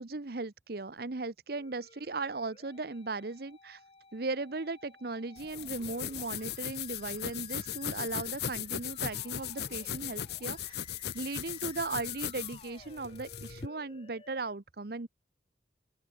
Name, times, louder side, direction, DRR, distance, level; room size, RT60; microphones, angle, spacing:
voice 1, 0.0-3.8 4.1-10.8 11.1-15.1, right 3 dB, 55° right, 0.9 m, -37 dB
Musical instrument, 1.5-14.5, left 4 dB, 30° left, 3.4 m, -56 dB
sound 1, 5.4-13.7, left 9 dB, 60° left, 0.8 m, -38 dB
open air
head